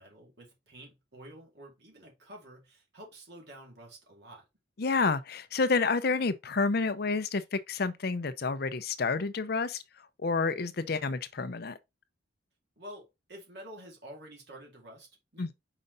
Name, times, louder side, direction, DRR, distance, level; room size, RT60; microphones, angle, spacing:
voice 1, 0.0-4.4 12.8-15.6, right 1 dB, 60° right, 2.6 m, -49 dB
voice 2, 4.8-9.8 10.2-11.8 15.4-15.6, left 4 dB, 55° left, 0.6 m, -29 dB
5.4 x 5.0 x 3.9 m
head